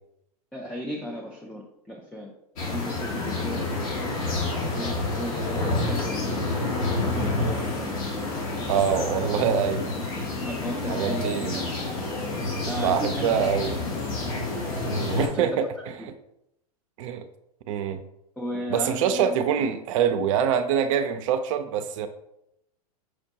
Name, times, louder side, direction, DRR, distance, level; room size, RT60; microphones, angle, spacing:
voice 1, 0.5-3.7 4.6-6.4 6.8-9.1 9.8-10.1 10.4-11.9 12.7-13.8 14.9-15.6 16.0-16.1 18.4-19.8, equal, 5° left, 0 dB, 0.4 m, -36 dB
sound 1, 2.6-15.3, left 2 dB, 60° left, 1.1 m, -29 dB
voice 2, 8.7-9.9 10.9-11.7 12.8-13.7 14.9-15.7 17.0-17.3 17.7-18.0 18.7-22.1, right 8 dB, 55° right, 9 dB, 0.4 m, -25 dB
6.0 x 2.1 x 2.8 m, 0.80 s
hypercardioid pair, 100°, 20 cm